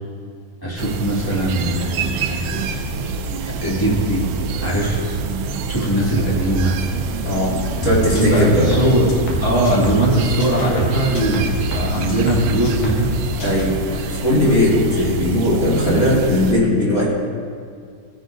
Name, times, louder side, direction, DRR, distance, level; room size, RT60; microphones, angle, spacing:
voice 1, 0.6-2.6 3.6-4.3 4.6-5.1 5.7-6.7 7.8-13.1, right 1 dB, 10° left, -6 dB, 1.8 m, -20 dB
sound 1, 0.8-16.5, right 4 dB, 80° right, 1.4 m, -27 dB
voice 2, 7.2-8.8 13.4-17.1, left 1 dB, 30° left, -7 dB, 2.5 m, -18 dB
sound 2, 7.8-10.1 10.4-13.1 13.4-13.6, equal, 70° left, 2.8 m, -26 dB
18.0 x 9.8 x 2.7 m, 2.1 s
omnidirectional pair, 3.4 m